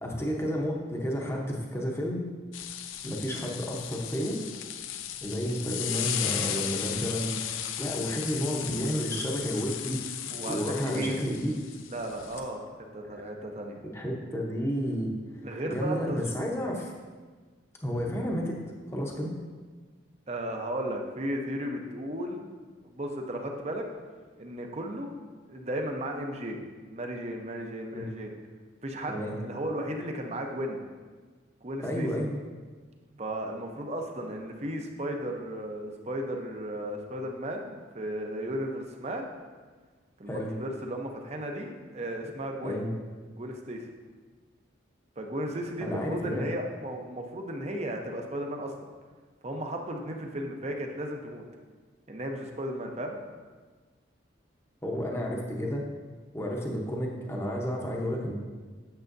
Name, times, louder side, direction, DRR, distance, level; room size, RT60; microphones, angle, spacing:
voice 1, 0.0-2.2 3.0-4.4 5.2-10.0 10.5-11.6 13.0-13.2 13.8-15.1 15.7-16.9 17.8-18.6 18.9-19.3 27.9-28.1 29.1-29.4 31.8-32.3 40.3-40.5 42.6-42.9 45.8-46.4 54.8-55.9 56.3-58.3, equal, 15° left, -1 dB, 0.8 m, -31 dB
sound 1, 2.5-12.4, left 10 dB, 80° left, 0.4 m, -36 dB
voice 2, 10.3-11.2 11.9-12.7 12.9-13.8 15.4-16.5 17.9-18.0 20.3-22.4 22.8-23.8 24.4-25.1 25.5-26.6 26.9-28.3 28.8-30.8 31.6-32.1 33.2-39.2 40.2-42.8 43.3-43.9 45.2-48.7 49.4-51.4 52.1-53.2, right 1 dB, 35° right, 2 dB, 0.7 m, -35 dB
9.0 x 6.9 x 2.6 m, 1.4 s
head